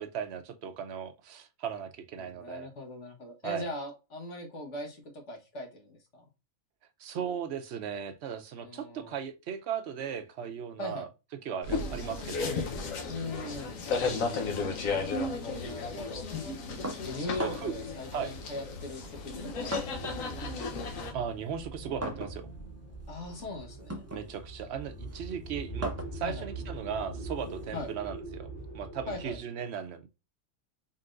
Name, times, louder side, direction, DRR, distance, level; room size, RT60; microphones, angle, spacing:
voice 1, 0.0-2.7 3.4-3.7 7.0-11.1 11.4-12.5 14.0-14.7 17.4-17.7 18.1-18.3 21.1-22.5 24.1-28.5 28.7-30.3, right 8 dB, 60° right, 0.9 m, -37 dB
voice 2, 2.2-6.2 8.6-9.1 10.8-11.1 11.7-11.9 13.1-13.8 15.6-16.2 17.0-20.2 23.1-24.1 26.2-26.5 27.7-27.9 29.1-29.4, left 2 dB, 65° left, 1.6 m, -40 dB
sound 1, 11.6-21.1, left 4 dB, 80° left, 1.2 m, -34 dB
sound 2, 16.8-17.9 18.8-20.3 20.6-27.9, right 1 dB, 20° right, 0.4 m, -42 dB
sound 3, 19.9-29.4, right 2 dB, 40° left, 1.7 m, -42 dB
4.0 x 3.7 x 2.4 m
omnidirectional pair, 1.4 m